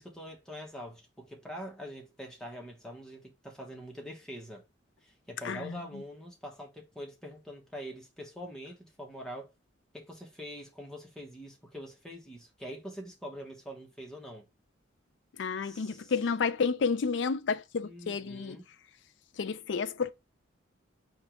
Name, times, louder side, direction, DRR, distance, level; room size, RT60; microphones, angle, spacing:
voice 1, 0.0-4.7 5.0-9.5 9.9-14.5 15.6-16.1 17.8-18.6, equal, 5° left, 1.1 m, -44 dB
voice 2, 5.4-6.0 15.4-18.6 19.4-20.1, left 5 dB, 65° left, 0.4 m, -31 dB
4.5 x 3.0 x 3.5 m
head